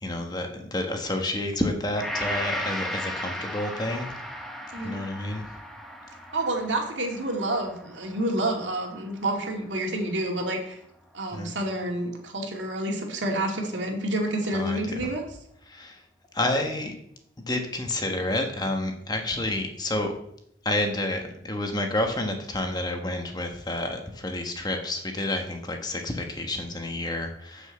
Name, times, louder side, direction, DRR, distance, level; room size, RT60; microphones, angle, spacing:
voice 1, 0.0-4.1 4.8-5.5 11.3-11.5 14.6-14.8 15.7-16.0 16.3-16.9 17.5-20.1 20.6-27.7, left 1 dB, 20° left, 4 dB, 1.2 m, -29 dB
Gong, 2.0-10.3 10.7-10.8, equal, ahead, 1.0 m, -36 dB
voice 2, 6.3-10.8 11.1-15.3, right 1 dB, 80° right, 1 dB, 2.4 m, -29 dB
7.2 x 6.8 x 7.7 m, 0.73 s
head